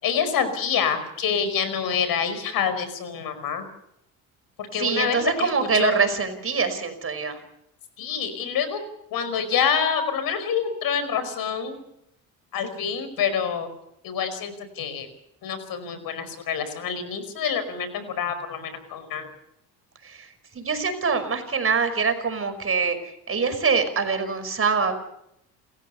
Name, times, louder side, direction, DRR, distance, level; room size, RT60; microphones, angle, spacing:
voice 1, 0.0-3.7 4.6-5.9 8.0-8.8 9.1-11.8 12.5-13.7 14.0-15.1 15.4-19.3, left 7 dB, 65° left, 11 dB, 5.1 m, -27 dB
voice 2, 4.8-7.4 20.0-20.3 20.5-23.0 23.3-24.9, right 5 dB, 35° right, 9 dB, 5.3 m, -24 dB
28.5 x 14.5 x 6.9 m, 0.77 s
supercardioid pair, 80°, 39 cm